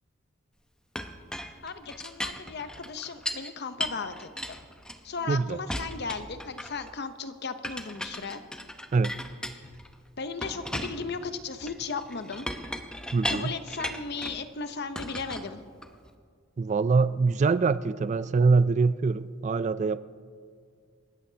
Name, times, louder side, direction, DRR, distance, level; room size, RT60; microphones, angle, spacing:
Chink clink, 1.0-3.5 3.8-5.3 5.7-6.9 7.6-9.9 10.4-14.4 15.0-16.1, left 1 dB, 5° left, 0.7 m, -37 dB
voice 1, 1.6-4.6 5.0-8.4 10.2-12.5 13.3-15.6, left 4 dB, 55° left, 10 dB, 0.8 m, -36 dB
voice 2, 5.3-5.6 8.9-9.1 13.1-13.5 16.6-20.0, right 4 dB, 35° right, 15 dB, 0.3 m, -24 dB
27.5 x 14.5 x 2.8 m, 2.1 s
head